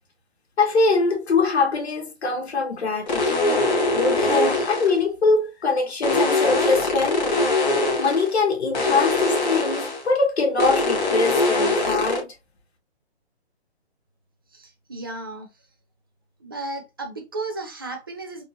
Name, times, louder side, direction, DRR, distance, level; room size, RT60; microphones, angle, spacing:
voice 1, 0.6-3.7 3.9-7.2 8.0-12.3, left 3 dB, 75° left, 1.5 m, -23 dB
sound 1, 3.1-5.0 6.0-8.3 8.7-10.1 10.6-12.2, left 2 dB, 40° left, 1.3 m, -22 dB
voice 2, 14.5-15.5 16.4-18.4, right 2 dB, 20° right, 0.4 m, -34 dB
3.7 x 2.4 x 2.7 m
hypercardioid pair, 160°, 33 cm